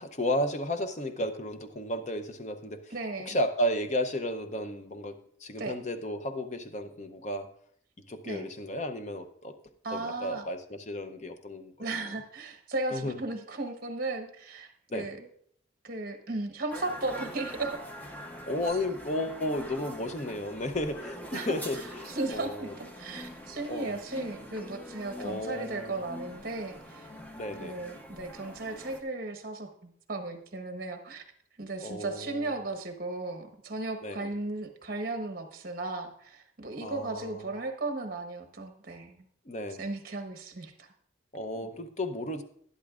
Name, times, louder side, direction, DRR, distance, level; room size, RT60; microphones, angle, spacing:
voice 1, 0.0-2.9 3.3-7.5 8.1-9.5 9.9-12.1 12.9-13.2 14.9-15.1 18.5-22.7 23.7-24.0 25.2-25.9 27.4-27.8 31.8-32.5 34.0-34.3 36.8-37.5 39.5-39.8 41.3-42.4, left 1 dB, 35° left, 8 dB, 0.7 m, -33 dB
voice 2, 2.9-3.3 5.5-5.8 8.2-8.5 9.8-10.4 11.8-15.3 15.8-17.8 18.6-18.7 21.3-21.6 22.0-27.1 27.6-31.2 31.6-39.3 39.8-40.9, right 2 dB, 50° right, 5 dB, 1.2 m, -36 dB
sound 1, 16.7-29.0, equal, 10° left, 0.8 m, -44 dB
12.0 x 11.0 x 2.5 m, 0.65 s
head